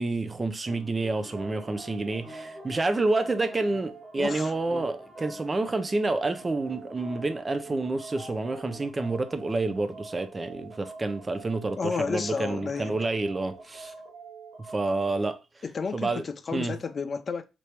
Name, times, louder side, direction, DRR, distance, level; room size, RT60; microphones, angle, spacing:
voice 1, 0.0-13.9 14.6-15.4 15.9-16.2 16.5-16.8, right 2 dB, 25° right, 0.5 m, -29 dB
sound 1, 0.7-8.9, left 2 dB, 15° left, 0.8 m, -49 dB
sound 2, 1.3-15.3, right 4 dB, 80° right, 1.0 m, -45 dB
voice 2, 4.2-4.5 11.8-13.0 15.6-17.4, left 5 dB, 40° left, 0.4 m, -31 dB
3.0 x 2.8 x 3.2 m
cardioid pair, 80°, 0 cm